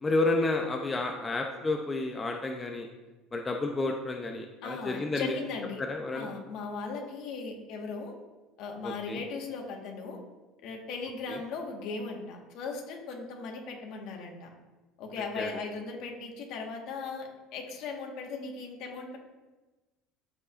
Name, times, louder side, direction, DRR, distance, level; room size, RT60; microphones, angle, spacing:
voice 1, 0.0-2.9 3.3-5.3 5.8-6.3 8.8-9.2 11.3-11.4 15.4-15.5, left 2 dB, 20° left, 2 dB, 0.6 m, -30 dB
voice 2, 4.6-5.8 6.1-8.1 8.6-10.2 10.6-14.5 15.0-19.2, left 4 dB, 65° left, 1 dB, 1.5 m, -38 dB
13.5 x 4.7 x 2.6 m, 1.2 s
supercardioid pair, 120°, 0 cm